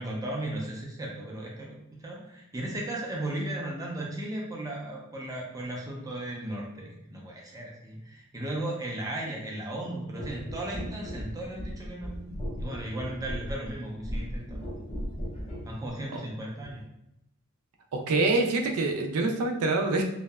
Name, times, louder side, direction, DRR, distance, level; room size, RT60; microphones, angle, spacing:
voice 1, 0.0-12.1 12.6-14.8 15.1-15.2 15.6-16.8, right 1 dB, 15° right, -3 dB, 0.4 m, -36 dB
sound 1, 10.2-15.7 16.6-16.8, equal, 30° left, 0.7 m, -37 dB
voice 2, 17.9-20.0, right 3 dB, 85° right, 3 dB, 0.4 m, -26 dB
2.7 x 2.0 x 2.2 m, 0.85 s
head